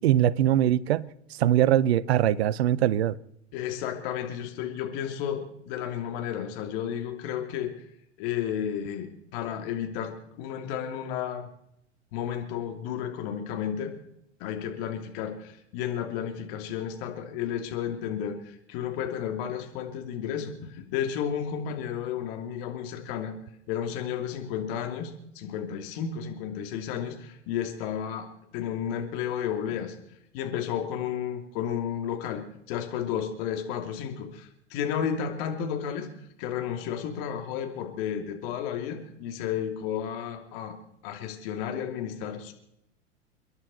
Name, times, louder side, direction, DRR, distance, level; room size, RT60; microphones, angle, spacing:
voice 1, 0.0-1.1 1.4-3.2, right 12 dB, 60° right, 0.8 m, -22 dB
voice 2, 3.5-7.9 8.2-11.5 12.1-13.9 14.4-23.3 23.7-28.3 28.5-30.0 30.3-32.4 32.7-36.1 36.4-40.8 41.0-42.5, left 9 dB, 50° left, 3.0 m, -32 dB
29.5 x 11.0 x 4.3 m
figure-of-eight pair, 95°, 37 cm